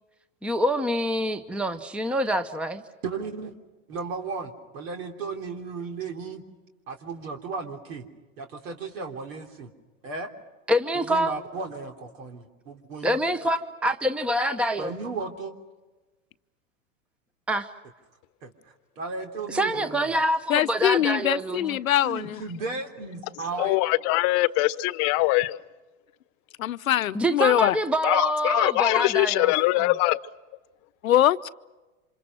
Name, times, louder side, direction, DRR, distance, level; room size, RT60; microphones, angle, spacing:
voice 1, 0.4-2.8 10.7-11.4 13.0-14.9 17.5-17.7 19.5-21.8 27.1-29.5 29.8-29.9, equal, 5° right, 11 dB, 0.9 m, -26 dB
voice 2, 3.0-3.5 3.9-6.4 6.9-8.1 8.4-9.7 10.0-10.3 11.1-13.2 14.8-15.5 18.4-18.5 19.0-20.1 22.0-23.8, right 4 dB, 70° right, 4 dB, 3.5 m, -35 dB
voice 3, 20.5-22.4 26.6-27.8 31.0-31.5, left 12 dB, 85° left, 15 dB, 0.8 m, -22 dB
voice 4, 23.6-25.6 28.0-30.2, left 20 dB, 45° left, 17 dB, 1.0 m, -22 dB
28.5 x 26.5 x 6.3 m, 1.2 s
hypercardioid pair, 105°, 40 cm